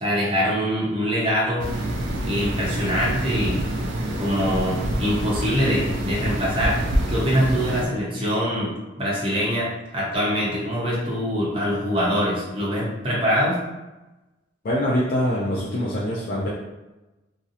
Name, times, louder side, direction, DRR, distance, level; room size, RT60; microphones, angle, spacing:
voice 1, 0.0-1.7 2.3-3.6 4.1-6.8 7.1-13.6, equal, 30° right, -6 dB, 0.6 m, -24 dB
sound 1, 1.6-7.9, right 1 dB, 70° right, 0.4 m, -26 dB
voice 2, 14.6-16.5, equal, 45° left, -6 dB, 0.4 m, -24 dB
2.4 x 2.0 x 2.7 m, 1.1 s
head